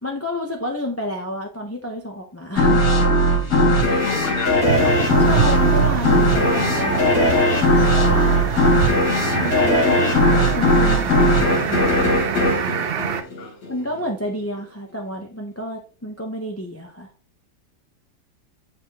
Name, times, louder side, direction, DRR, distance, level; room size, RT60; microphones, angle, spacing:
voice 1, 0.0-2.9 3.9-4.0 5.2-8.6 9.3-12.1 13.7-17.1, left 1 dB, 15° left, 0.5 m, -30 dB
sound 1, 2.6-13.7, equal, 60° left, 2.4 m, -18 dB
voice 2, 3.7-4.9 13.3-13.7, left 6 dB, 90° left, 1.7 m, -34 dB
sound 2, 4.6-13.2, right 7 dB, 75° right, 0.5 m, -25 dB
9.4 x 4.3 x 2.9 m
omnidirectional pair, 1.9 m